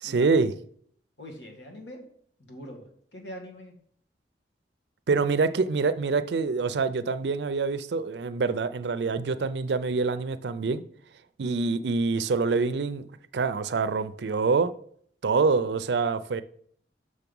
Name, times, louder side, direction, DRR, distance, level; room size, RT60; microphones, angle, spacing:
voice 1, 0.0-0.5 5.1-10.8 11.4-13.0 13.3-14.7 15.2-16.4, right 4 dB, 70° right, 0.5 m, -25 dB
voice 2, 1.2-2.0 2.4-3.8, equal, 80° left, 1.8 m, -43 dB
6.4 x 5.9 x 5.3 m
head